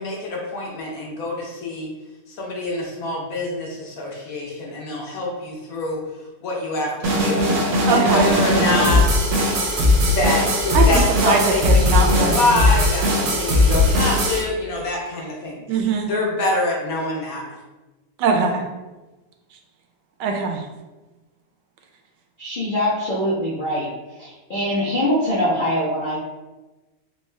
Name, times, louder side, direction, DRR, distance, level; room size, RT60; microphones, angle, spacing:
voice 1, 0.0-1.9 2.4-6.0 6.4-7.5 7.9-9.0 10.0-15.7 16.1-17.4, left 2 dB, 65° left, -2 dB, 1.0 m, -25 dB
sound 1, 7.0-14.4, left 1 dB, 60° right, 0.9 m, -18 dB
voice 2, 7.9-8.3 10.7-12.7 15.7-16.1 18.2-18.6 20.2-20.6, right 5 dB, 80° right, 2 dB, 1.2 m, -21 dB
voice 3, 22.4-23.9 24.2-26.2, equal, 85° left, -8 dB, 0.4 m, -23 dB
3.6 x 2.3 x 3.1 m, 1.1 s
omnidirectional pair, 1.9 m